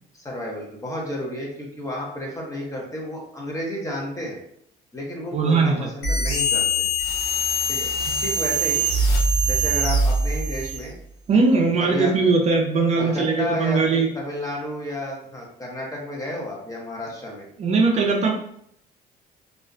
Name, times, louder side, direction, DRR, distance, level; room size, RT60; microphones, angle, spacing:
voice 1, 0.1-4.4 4.9-6.9 7.7-7.9 8.2-8.8 9.5-11.0 11.8-12.1 13.0-17.5, left 1 dB, 20° left, -2 dB, 0.7 m, -31 dB
voice 2, 5.3-5.9 8.1-8.2 11.3-14.1 17.6-18.3, right 4 dB, 40° right, 0 dB, 0.4 m, -20 dB
sound 1, 6.0-10.9, right 1 dB, 85° left, 0.9 m, -22 dB
2.4 x 2.1 x 2.4 m, 0.69 s
cardioid pair, 110°, 17 cm